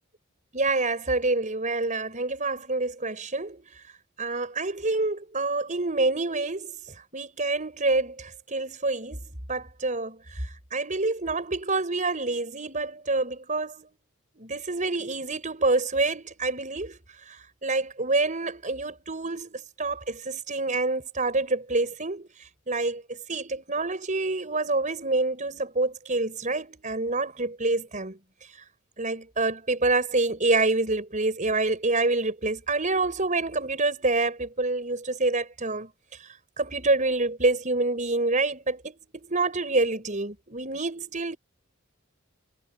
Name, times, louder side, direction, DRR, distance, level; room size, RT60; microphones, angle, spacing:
voice 1, 0.5-3.6 4.2-6.7 7.1-9.2 9.5-10.2 10.7-13.9 14.4-17.0 17.6-22.3 22.7-28.2 29.0-35.9 36.6-41.4, right 3 dB, 35° right, 6.1 m, -27 dB
head